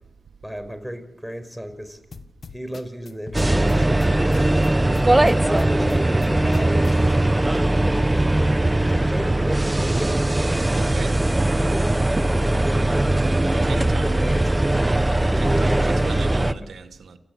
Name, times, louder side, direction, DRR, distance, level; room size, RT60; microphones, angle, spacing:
voice 1, 0.4-2.0 2.5-4.5 5.3-7.0 7.3-8.1 8.8-10.7 11.6-13.1 13.6-14.7 15.3-16.3, equal, ahead, 5.3 m, -33 dB
sound 1, 2.1-7.2, left 4 dB, 70° left, 1.6 m, -41 dB
sound 2, 3.3-16.5, right 1 dB, 25° right, 1.2 m, -20 dB
voice 2, 10.7-11.2 13.6-14.4 15.4-17.2, right 5 dB, 80° right, 1.6 m, -38 dB
28.5 x 15.0 x 7.9 m
cardioid pair, 40°, 0 cm